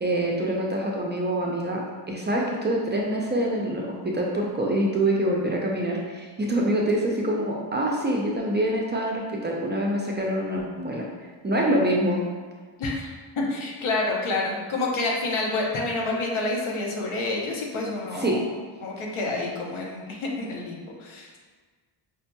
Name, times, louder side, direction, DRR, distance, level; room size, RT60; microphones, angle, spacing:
voice 1, 0.0-11.1 11.4-12.2 18.1-18.4, right 1 dB, 25° right, -2 dB, 0.4 m, -25 dB
voice 2, 12.8-21.4, left 2 dB, 85° left, -2 dB, 0.9 m, -28 dB
5.0 x 2.8 x 2.2 m, 1.5 s
wide cardioid pair, 145°, 47 cm